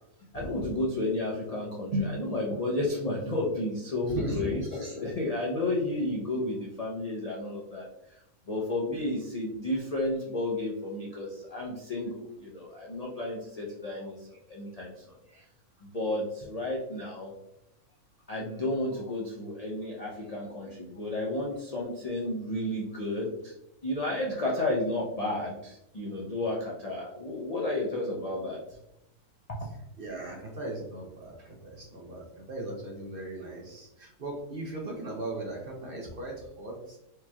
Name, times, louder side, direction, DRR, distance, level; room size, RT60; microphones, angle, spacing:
voice 1, 0.3-7.9 8.5-15.4 15.8-17.3 18.3-23.5 23.8-28.6 29.5-29.6, left 1 dB, 65° left, -3 dB, 0.3 m, -32 dB
voice 2, 4.0-4.6 30.0-37.0, right 1 dB, 50° right, -1 dB, 0.7 m, -37 dB
4.8 x 2.9 x 2.3 m, 0.86 s
omnidirectional pair, 1.6 m